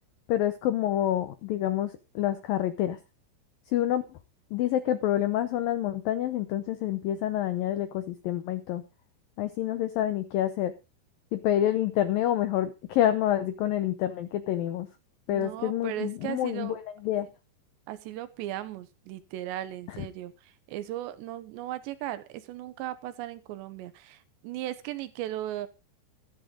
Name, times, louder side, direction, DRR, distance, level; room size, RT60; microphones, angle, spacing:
voice 1, 0.3-1.9 2.2-3.0 3.7-4.0 4.5-8.8 9.4-10.7 11.3-14.9 15.3-17.3, left 12 dB, 80° left, 11 dB, 2.0 m, -27 dB
voice 2, 15.3-16.8 17.9-25.7, right 13 dB, 80° right, 13 dB, 3.1 m, -37 dB
13.0 x 12.5 x 3.8 m, 0.29 s
omnidirectional pair, 5.1 m